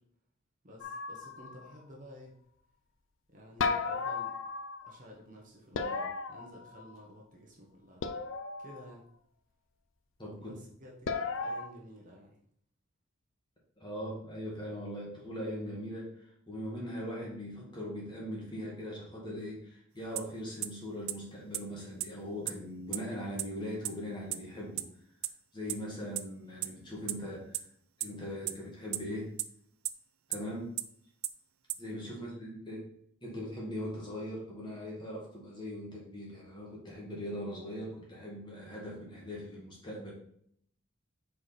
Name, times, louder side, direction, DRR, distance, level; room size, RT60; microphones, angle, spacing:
voice 1, 0.6-2.3 3.3-4.4 4.8-8.0 8.6-9.0 10.4-12.4 32.1-32.4, equal, 35° right, -2 dB, 1.1 m, -52 dB
sound 1, 0.8-1.7 3.6-5.0 5.7-7.0 8.0-8.9 11.1-11.7, left 4 dB, 65° left, 0.4 m, -35 dB
voice 2, 10.2-10.5 13.8-24.9 25.5-27.6 28.0-29.3 30.3-30.7 31.8-32.8 33.2-40.1, equal, 20° left, -3 dB, 1.6 m, -40 dB
sound 2, 20.2-20.3 20.6-20.7 21.1-21.2 21.5-21.6 22.0-22.1 22.5-22.6 22.9-23.0 23.4-23.5 23.8-23.9 24.3-24.4 24.8-24.9 25.2-25.3 25.7-25.8 26.2-26.3 26.6-26.7 27.1-27.2 27.5-27.6 28.0-28.1 28.5-28.6 28.9-29.0 29.4-29.5 29.8-29.9 30.3-30.4 30.8-30.9 31.2-31.3 31.7-31.8, right 17 dB, 80° right, 0.4 m, -31 dB
4.8 x 4.7 x 4.2 m, 0.66 s
head